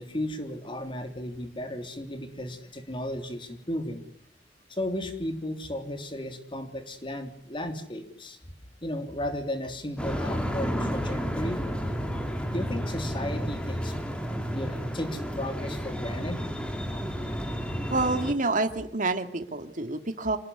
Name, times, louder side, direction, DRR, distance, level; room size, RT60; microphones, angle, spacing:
voice 1, 0.0-4.1 4.7-8.4 8.8-11.6 12.5-14.0 14.5-16.5, left 1 dB, 30° left, 6 dB, 3.4 m, -34 dB
sound 1, 10.0-18.3, equal, 5° left, 4.4 m, -31 dB
voice 2, 17.9-20.4, right 3 dB, 50° right, 7 dB, 2.4 m, -28 dB
27.0 x 20.0 x 9.8 m, 0.63 s
head